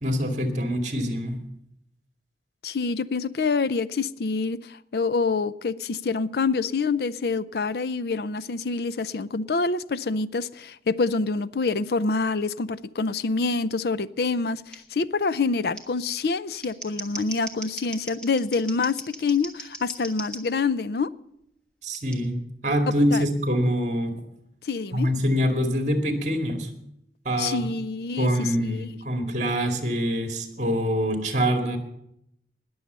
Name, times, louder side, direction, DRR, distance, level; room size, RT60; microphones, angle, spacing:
voice 1, 0.0-1.4 21.8-22.4 22.6-24.1 24.9-26.7 27.2-27.7 28.2-31.8, equal, 40° right, 2.2 m, -25 dB
voice 2, 2.6-21.1 23.1-23.2 24.6-25.1 27.4-28.9, left 4 dB, 60° left, 0.5 m, -26 dB
Scissors, 14.7-14.8 15.7-15.8 16.5-20.4 21.9-22.2, right 1 dB, 5° left, 1.4 m, -38 dB
20.0 x 7.2 x 6.7 m
head